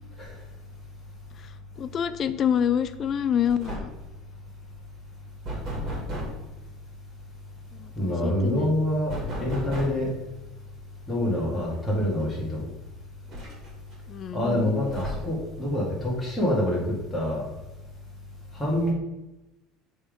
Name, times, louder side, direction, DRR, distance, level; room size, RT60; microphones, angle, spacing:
voice 1, 1.4-3.9 7.7-8.8 11.2-11.6 14.1-14.7, left 8 dB, 35° left, 13 dB, 0.3 m, -28 dB
sound 1, 3.0-3.2 3.5-4.1 5.4-6.5 9.1-10.1 11.7-11.8 12.2-12.3 13.3-13.9 14.9-15.5, equal, 35° right, 2.2 m, -34 dB
voice 2, 8.0-10.1 11.1-12.7 14.3-16.8 17.1-17.5 18.5-18.9, left 1 dB, 5° left, -6 dB, 1.8 m, -26 dB
7.1 x 3.6 x 5.2 m, 0.99 s
cardioid pair, 155°, 0 cm